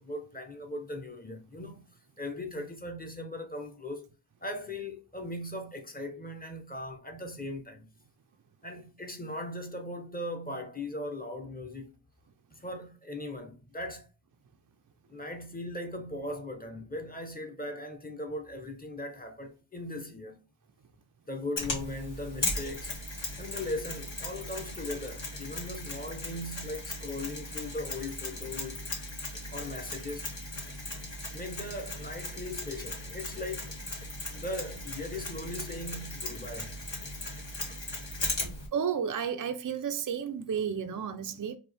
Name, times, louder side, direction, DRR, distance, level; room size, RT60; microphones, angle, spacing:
voice 1, 0.0-1.9 2.2-4.1 4.4-7.9 8.6-11.9 12.6-14.1 15.1-20.4 21.3-23.0 23.4-28.9 29.5-30.3 31.3-33.7 34.3-36.7, left 1 dB, 20° left, 0.8 m, -39 dB
Mechanisms, 21.6-38.7, left 2 dB, 60° left, 1.8 m, -37 dB
voice 2, 38.7-41.6, right 7 dB, 40° right, 0.4 m, -32 dB
4.2 x 2.6 x 3.3 m
wide cardioid pair, 65°, 49 cm